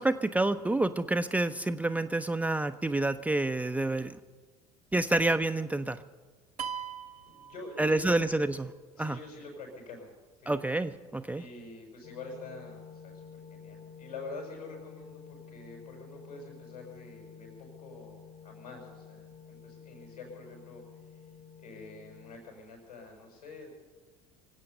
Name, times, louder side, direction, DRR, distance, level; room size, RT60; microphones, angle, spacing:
voice 1, 0.0-4.2 4.9-6.0 7.8-8.7 9.0-9.2 10.5-11.4, right 2 dB, 5° right, 9 dB, 0.5 m, -28 dB
sound 1, 6.6-8.3, right 8 dB, 75° right, 0.8 m, -40 dB
voice 2, 7.3-8.2 8.9-10.1 10.4-10.6 11.4-13.2 13.5-20.8 21.1-21.2 21.6-23.7, left 3 dB, 80° left, 0 dB, 5.7 m, -46 dB
sound 2, 12.0-22.4, left 7 dB, 45° left, 1.8 m, -51 dB
24.5 x 8.4 x 6.7 m, 1.4 s
figure-of-eight pair, 65°, 20 cm